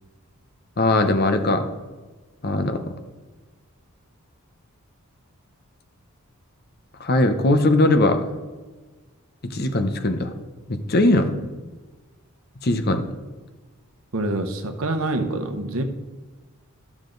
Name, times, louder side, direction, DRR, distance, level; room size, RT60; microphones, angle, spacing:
voice 1, 0.8-1.7 2.4-2.8 7.0-8.2 9.5-10.3 10.7-11.2 12.6-13.0, left 2 dB, 45° left, 7 dB, 0.8 m, -19 dB
voice 2, 14.1-15.8, right 2 dB, 70° right, 7 dB, 0.9 m, -26 dB
12.0 x 7.3 x 3.9 m, 1.3 s
head